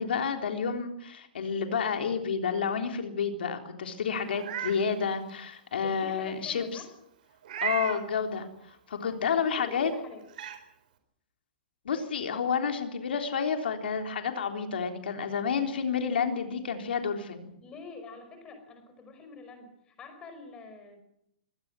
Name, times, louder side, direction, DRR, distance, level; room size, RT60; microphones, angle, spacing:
voice 1, 0.0-6.8 7.6-8.5 8.9-9.9 11.9-17.5, left 6 dB, 80° left, 5 dB, 3.5 m, -30 dB
Meow, 4.2-4.8 5.3-5.4 7.4-8.0 9.6-9.7 10.3-10.6, right 10 dB, 55° right, 4.1 m, -34 dB
voice 2, 5.8-6.9 9.2-10.3 17.6-21.0, left 3 dB, 15° left, 7 dB, 5.0 m, -46 dB
24.0 x 18.5 x 7.6 m, 0.77 s
hypercardioid pair, 170°, 5 cm